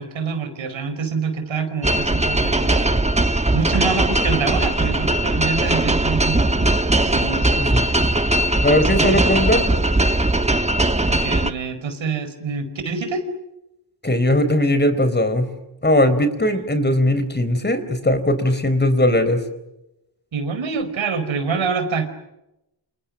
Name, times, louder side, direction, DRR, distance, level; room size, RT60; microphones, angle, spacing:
voice 1, 0.0-3.0 3.5-6.7 7.0-7.6 8.9-9.4 11.1-13.3 16.5-16.6 20.3-22.1, right 5 dB, 80° right, 9 dB, 5.2 m, -26 dB
sound 1, 1.8-11.5, right 1 dB, 15° right, 1.4 m, -19 dB
voice 2, 8.6-9.6 14.0-15.5 15.8-19.4, left 1 dB, 20° left, 11 dB, 4.3 m, -19 dB
29.0 x 28.0 x 6.5 m, 0.89 s
wide cardioid pair, 95°, 46 cm